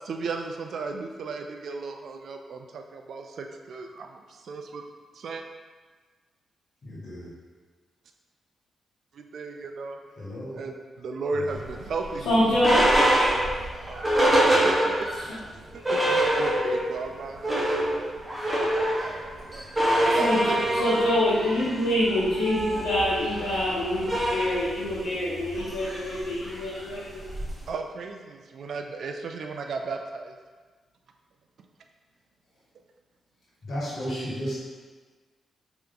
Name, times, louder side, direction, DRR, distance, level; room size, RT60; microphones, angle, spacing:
voice 1, 0.0-4.8 5.1-5.4 9.1-10.0 10.5-15.1 15.7-18.1 18.9-20.9 27.7-30.4 31.6-31.7, right 4 dB, 70° right, 4 dB, 0.3 m, -35 dB
voice 2, 6.8-7.3 10.2-10.6 11.3-11.5 33.6-34.5, equal, 60° left, -7 dB, 1.5 m, -33 dB
sound 1, 11.6-15.3 15.6-15.7 15.8-16.9 17.2-27.7, right 1 dB, 20° right, 1.2 m, -25 dB
voice 3, 12.2-12.9 20.2-20.4 20.7-27.2, left 1 dB, 80° left, -11 dB, 1.1 m, -25 dB
3.3 x 2.9 x 3.8 m, 1.4 s
supercardioid pair, 55°, 0 cm